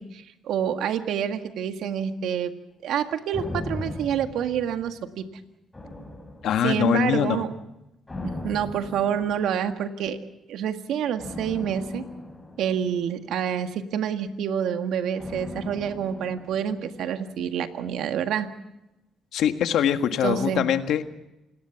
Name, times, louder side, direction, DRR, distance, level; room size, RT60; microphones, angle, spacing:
voice 1, 0.0-2.5 2.8-5.3 6.6-7.5 8.2-10.2 10.5-12.0 12.6-18.5 20.2-20.7, right 8 dB, 80° right, 7 dB, 1.7 m, -27 dB
sound 1, 3.3-5.2 5.7-7.0 8.1-9.8 11.2-13.6 15.2-17.4 17.6-17.7, left 2 dB, 15° left, 7.1 m, -38 dB
voice 2, 6.4-7.4 19.3-21.0, left 9 dB, 80° left, 8 dB, 1.7 m, -23 dB
28.0 x 19.0 x 5.9 m, 0.91 s
cardioid pair, 90°, 0 cm